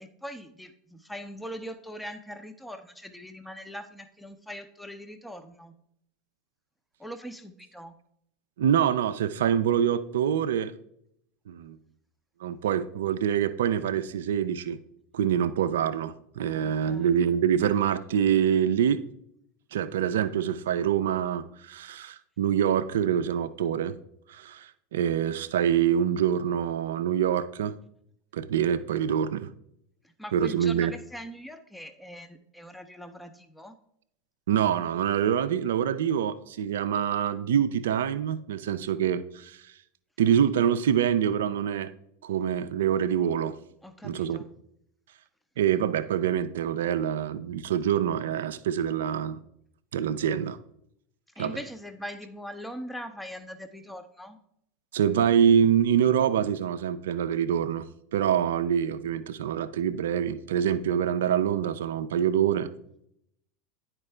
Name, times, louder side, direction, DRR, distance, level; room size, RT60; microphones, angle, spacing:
voice 1, 0.0-5.7 7.0-7.9 16.6-17.1 30.0-33.8 43.8-44.5 51.4-54.4, equal, 5° left, 8 dB, 0.6 m, -41 dB
voice 2, 8.6-10.7 11.5-11.8 12.4-14.8 15.1-19.0 19.7-24.0 24.3-27.8 28.3-29.5 30.3-30.9 34.5-39.6 40.2-41.9 42.2-43.5 44.0-44.4 45.6-49.4 49.9-50.6 51.4-51.6 54.9-57.9 58.1-62.7, right 9 dB, 75° right, 11 dB, 0.3 m, -25 dB
9.8 x 4.4 x 3.3 m, 0.73 s
hypercardioid pair, 90°, 0 cm